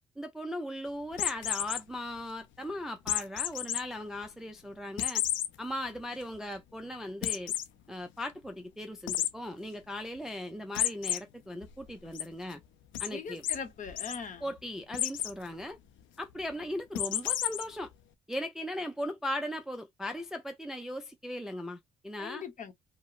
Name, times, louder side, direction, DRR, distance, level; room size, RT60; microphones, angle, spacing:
voice 1, 0.2-5.2 5.6-7.5 7.9-12.6 13.0-13.4 14.4-15.8 16.2-17.9 18.3-22.4, left 1 dB, 5° right, 0.3 m, -38 dB
sound 1, 1.1-1.8 3.1-3.8 4.2-4.3 5.0-5.5 6.0-6.1 6.3-6.4 7.2-7.7 9.1-9.3 10.7-11.2 11.6-12.2 12.9-13.1 13.4-13.6 13.9-14.2 14.9-15.3 16.9-17.6, left 11 dB, 85° left, 0.5 m, -31 dB
voice 2, 13.1-14.5 22.2-22.7, left 6 dB, 40° left, 0.8 m, -41 dB
2.8 x 2.0 x 2.2 m
cardioid pair, 130°, 19 cm